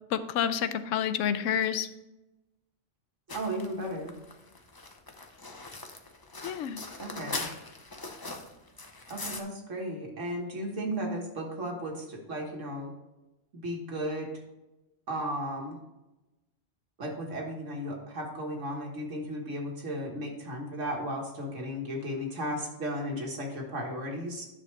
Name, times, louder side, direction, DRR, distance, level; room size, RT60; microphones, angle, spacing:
voice 1, 0.1-1.9 6.4-6.8, left 8 dB, 90° left, 12 dB, 1.0 m, -29 dB
sound 1, 3.3-9.4, left 3 dB, 25° left, 0.6 m, -41 dB
voice 2, 3.3-4.1 6.9-7.5 9.1-12.9 13.5-14.3 15.1-15.8 17.0-24.5, equal, 80° right, 0 dB, 1.8 m, -35 dB
10.0 x 6.3 x 3.2 m, 1.0 s
omnidirectional pair, 1.3 m